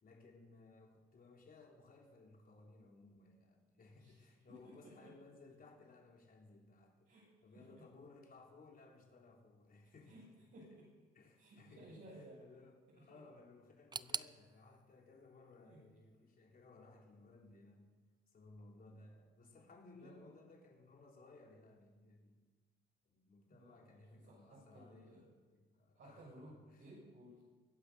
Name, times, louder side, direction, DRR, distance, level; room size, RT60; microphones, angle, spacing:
voice 1, 0.0-10.3 11.1-18.0 18.3-22.4 23.0-25.2 25.5-26.9, left 3 dB, 45° left, 0 dB, 4.0 m, -61 dB
voice 2, 3.9-5.1 7.1-7.3 7.5-7.8 10.1-10.3 10.5-10.9 11.4-12.4 12.9-13.2 15.6-15.8 20.0-20.3 23.5-23.9 24.3-25.2 26.0-27.4, right 1 dB, 65° right, -7 dB, 7.3 m, -58 dB
sound 1, 13.9-16.8 17.0-17.9 18.2-18.3 19.1-19.2, right 5 dB, 20° right, 0.4 m, -48 dB
23.0 x 8.8 x 7.0 m, 1.3 s
cardioid pair, 90°, 20 cm